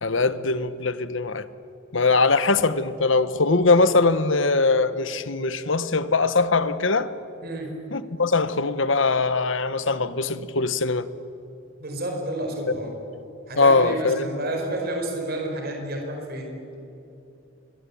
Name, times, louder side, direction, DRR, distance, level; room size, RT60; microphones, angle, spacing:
voice 1, 0.0-1.5 1.9-7.1 7.9-11.1 13.6-14.2, left 3 dB, 60° left, 1.1 m, -21 dB
voice 2, 7.4-7.8 11.8-12.9 13.5-16.6, right 1 dB, 45° right, 5.0 m, -30 dB
27.0 x 23.5 x 8.6 m
head